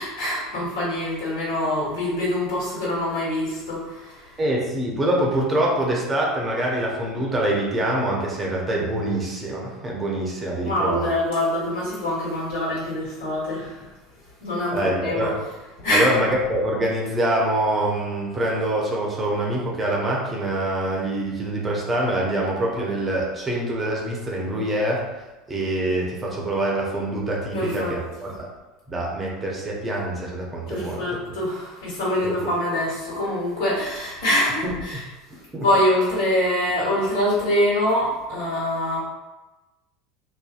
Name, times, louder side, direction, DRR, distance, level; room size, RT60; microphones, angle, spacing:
voice 1, 0.0-4.4 10.6-13.9 14.4-15.3 15.8-16.1 27.5-27.9 30.7-35.0 35.6-39.0, left 1 dB, 70° left, -7 dB, 1.4 m, -24 dB
voice 2, 4.4-11.1 14.7-15.3 15.9-25.0 25.5-28.5 28.9-31.0 32.2-32.5 34.9-35.0 35.5-35.7, right 1 dB, 25° right, -3 dB, 0.6 m, -25 dB
2.6 x 2.2 x 2.4 m, 1.1 s
hypercardioid pair, 75°, 0 cm